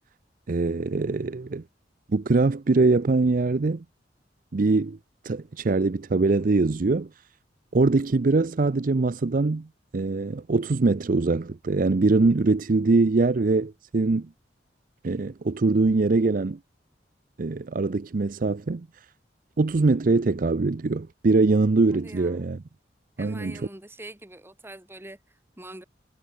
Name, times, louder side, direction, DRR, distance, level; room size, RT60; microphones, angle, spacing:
voice 1, 0.5-1.6 2.1-3.8 4.5-5.0 5.2-7.1 7.7-9.7 9.9-14.3 15.0-16.6 17.4-18.9 19.6-22.6 23.2-23.6, right 3 dB, 50° right, 0.5 m, -22 dB
voice 2, 21.9-22.5 23.2-25.8, right 1 dB, 15° right, 2.1 m, -44 dB
head